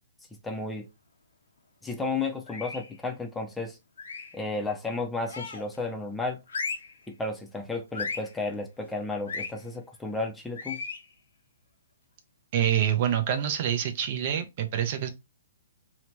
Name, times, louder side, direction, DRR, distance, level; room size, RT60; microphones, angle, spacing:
voice 1, 0.4-0.9 1.8-3.8 4.3-6.4 7.1-10.8, left 3 dB, 5° left, 0.5 m, -33 dB
sound 1, 2.5-2.9 4.0-4.4 5.3-5.8 6.5-7.0 7.9-8.3 9.3-9.5 10.6-11.1, left 4 dB, 70° left, 0.6 m, -35 dB
voice 2, 12.5-15.1, right 10 dB, 45° right, 0.5 m, -26 dB
2.8 x 2.1 x 3.1 m
hypercardioid pair, 130°, 0 cm